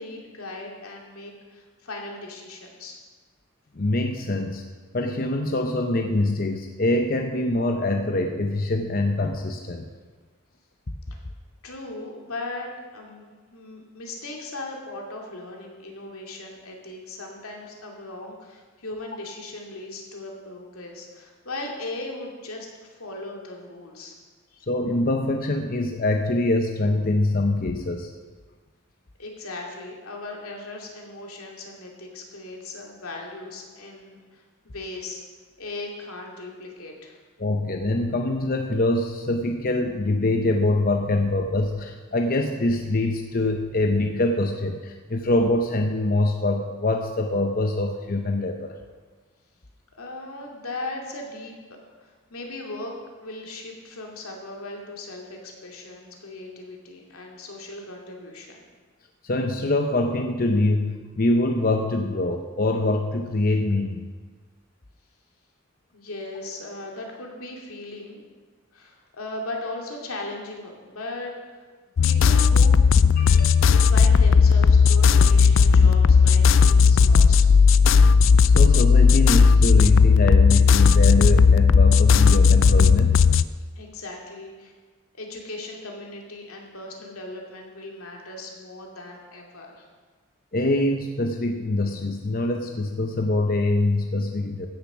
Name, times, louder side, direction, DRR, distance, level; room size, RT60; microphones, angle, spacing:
voice 1, 0.0-3.0 11.6-24.1 24.5-24.6 29.2-35.2 35.6-37.2 50.0-51.5 52.0-52.9 53.2-58.6 65.9-68.2 68.7-71.6 72.0-72.8 73.6-77.5 83.8-84.7 85.1-89.9, left 2 dB, 85° left, 0 dB, 2.5 m, -38 dB
voice 2, 3.7-4.6 4.9-9.9 24.7-28.1 37.4-48.8 59.2-64.1 73.2-73.7 78.4-83.2 90.5-94.7, left 2 dB, 40° left, 4 dB, 0.7 m, -24 dB
sound 1, 72.0-83.4, left 5 dB, 60° left, 0.4 m, -15 dB
15.5 x 7.0 x 6.1 m, 1.4 s
head